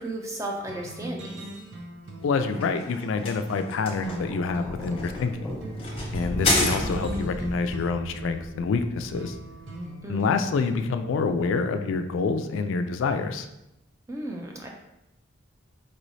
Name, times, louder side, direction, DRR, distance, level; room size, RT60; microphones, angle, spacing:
voice 1, 0.0-1.5 6.4-6.8 10.0-10.4 14.1-14.7, right 1 dB, 15° right, 1 dB, 0.4 m, -35 dB
sound 1, 0.7-12.0, right 1 dB, 65° right, 0.6 m, -41 dB
voice 2, 2.2-5.5 6.1-9.4 10.1-13.5, left 4 dB, 75° left, 8 dB, 0.3 m, -27 dB
sound 2, 2.2-7.3, left 2 dB, 30° left, 0.7 m, -30 dB
Thunder, 3.9-10.2 11.2-11.5, left 1 dB, 5° left, 0.9 m, -37 dB
4.7 x 3.1 x 2.6 m, 0.89 s
head